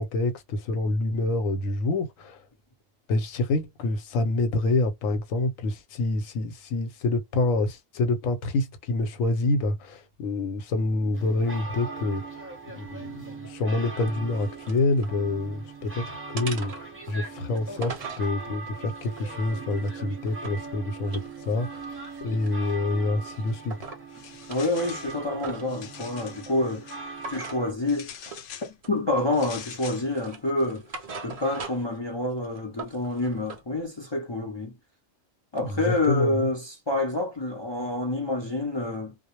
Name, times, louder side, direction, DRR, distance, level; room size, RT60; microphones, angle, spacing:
voice 1, 0.0-2.4 3.1-12.4 12.7-21.9 22.2-23.8 35.6-36.5, left 2 dB, 85° left, 1.1 m, -27 dB
sound 1, 11.1-27.7, right 4 dB, 10° right, 0.7 m, -40 dB
sound 2, 14.0-15.2 15.6-15.9 16.4-18.3 18.9-20.7 21.0-22.8 23.3-24.0 24.4-25.8 27.2-27.6 28.3-28.5 28.8-29.5 30.0-32.0 32.3-33.6, right 4 dB, 45° right, 0.5 m, -41 dB
sound 3, 24.1-25.2 25.6-27.0 27.9-28.7 29.3-30.1, left 8 dB, 70° left, 0.9 m, -44 dB
voice 2, 24.5-28.1 28.7-30.9 31.2-34.7 35.5-39.1, left 2 dB, 35° left, 0.4 m, -28 dB
2.3 x 2.0 x 2.9 m
omnidirectional pair, 1.4 m